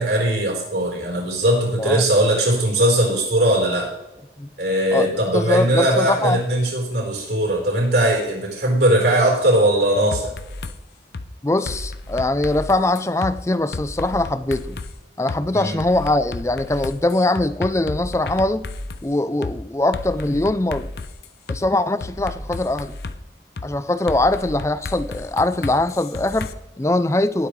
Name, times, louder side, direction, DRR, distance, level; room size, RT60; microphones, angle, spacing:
voice 1, 0.0-3.9 4.6-10.3 15.5-15.8, right 1 dB, 70° right, -1 dB, 4.4 m, -19 dB
voice 2, 4.9-6.4 11.4-14.8 15.2-18.7 19.0-20.9 21.5-23.0 23.6-27.5, left 2 dB, 15° left, 13 dB, 0.5 m, -22 dB
sound 1, 10.1-10.8 11.1-11.3 11.7-13.3 13.7-14.9 15.3-15.4 15.8-19.0 19.4-19.6 19.9-21.6 22.0-23.2 23.6-23.7 24.1-26.5, left 3 dB, 70° left, 0.7 m, -32 dB
18.5 x 8.6 x 3.3 m, 0.94 s
head